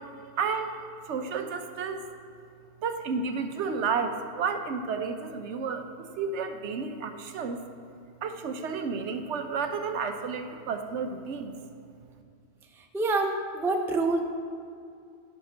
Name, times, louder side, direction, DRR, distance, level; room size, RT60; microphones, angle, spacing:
voice 1, 0.4-0.7 1.1-2.0 2.8-7.6 8.2-11.5, right 5 dB, 80° right, 7 dB, 1.0 m, -31 dB
voice 2, 12.8-14.2, right 3 dB, 5° right, 3 dB, 0.4 m, -27 dB
8.7 x 5.9 x 6.2 m, 2.4 s
omnidirectional pair, 1.2 m